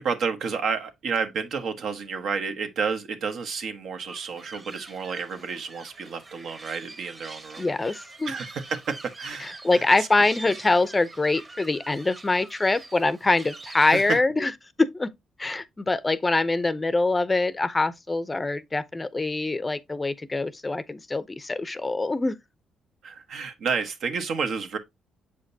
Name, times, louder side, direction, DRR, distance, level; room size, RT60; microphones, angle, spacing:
voice 1, 0.0-8.0 8.3-10.1 13.8-14.2 23.0-24.8, right 5 dB, 70° right, 1.1 m, -30 dB
sound 1, 4.1-14.2, right 3 dB, 35° right, 1.5 m, -45 dB
voice 2, 7.6-8.3 9.4-14.5 14.8-15.1 15.4-22.3, left 3 dB, 20° left, 0.5 m, -24 dB
6.9 x 5.1 x 2.7 m
cardioid pair, 90°, 0 cm